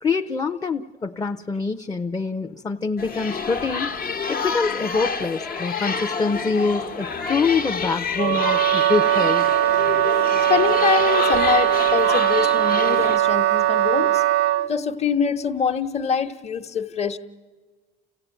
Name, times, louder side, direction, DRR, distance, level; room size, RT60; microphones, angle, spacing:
voice 1, 0.0-3.9 4.3-9.5 14.6-14.7, left 4 dB, 20° left, 4 dB, 0.7 m, -25 dB
sound 1, 3.0-13.2, left 5 dB, 60° left, 1.3 m, -28 dB
Wind instrument woodwind instrument, 8.2-14.7, right 14 dB, 85° right, 0.6 m, -20 dB
voice 2, 10.2-14.2 14.7-17.2, left 6 dB, 40° left, 7 dB, 1.3 m, -24 dB
29.0 x 16.0 x 9.1 m, 1.3 s
cardioid pair, 110°, 17 cm